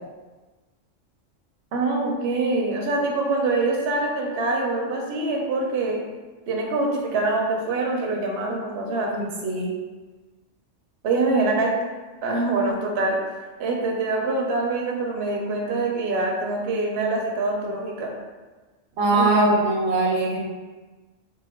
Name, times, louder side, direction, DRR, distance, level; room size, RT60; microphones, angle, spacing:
voice 1, 1.7-6.0 6.5-9.3 11.0-11.8 12.2-13.2 13.6-18.1 19.1-19.5 20.2-20.3, right 3 dB, 65° right, 0 dB, 0.8 m, -24 dB
voice 2, 9.1-9.7 19.0-20.5, right 2 dB, 90° right, -2 dB, 1.1 m, -22 dB
3.1 x 2.0 x 3.4 m, 1.3 s
omnidirectional pair, 1.3 m